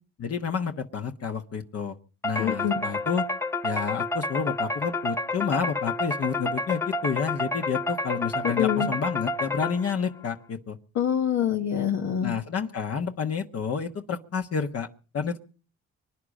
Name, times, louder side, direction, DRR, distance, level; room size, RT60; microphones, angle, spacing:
voice 1, 0.2-1.9 2.2-3.3 3.6-10.8 12.2-14.9 15.1-15.4, left 6 dB, 50° left, 5 dB, 1.3 m, -30 dB
sound 1, 2.2-10.1, left 2 dB, 10° left, 1.0 m, -30 dB
voice 2, 2.4-2.8 8.4-8.9 10.9-12.3, left 9 dB, 75° left, 3 dB, 1.3 m, -25 dB
25.0 x 10.0 x 5.3 m, 0.41 s
cardioid pair, 90°, 30 cm